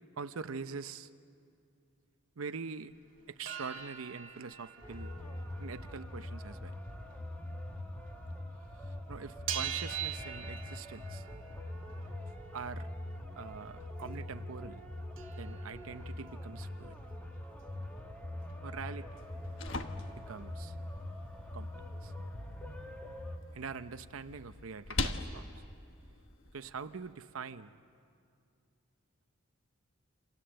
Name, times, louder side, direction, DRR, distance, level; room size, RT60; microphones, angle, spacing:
voice 1, 0.2-1.1 2.4-2.9 3.3-5.1 5.6-6.7 8.7-11.3 12.3-12.9 13.4-14.8 15.4-17.0 18.6-19.2 20.2-20.8 21.5-21.7 22.0-22.1 23.5-25.6 26.5-27.8, right 5 dB, 85° right, 10 dB, 0.7 m, -44 dB
sound 1, 3.2-8.4 8.7-14.2 14.7-14.8 14.9-18.9 19.2-20.1 20.4-20.5 20.7-21.8 22.2-22.3, right 9 dB, 70° right, 2.0 m, -45 dB
sound 2, 4.8-23.4, left 1 dB, 10° left, 1.7 m, -43 dB
sound 3, 19.2-27.1, left 3 dB, 65° left, 1.3 m, -43 dB
28.5 x 27.5 x 7.7 m, 2.4 s
head